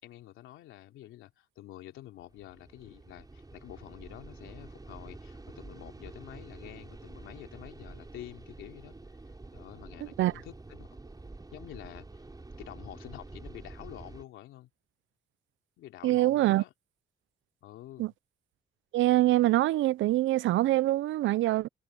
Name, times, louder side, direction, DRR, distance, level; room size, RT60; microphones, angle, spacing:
voice 1, 0.0-8.9 9.5-10.9 11.5-12.1 12.6-14.7 15.8-16.7 17.6-18.1, left 14 dB, 90° left, 3.1 m, -48 dB
sound 1, 2.2-14.2, right 2 dB, 20° right, 6.4 m, -48 dB
voice 2, 16.0-16.6 18.0-18.1 18.9-21.7, right 16 dB, 75° right, 0.5 m, -24 dB
cardioid pair, 90°, 20 cm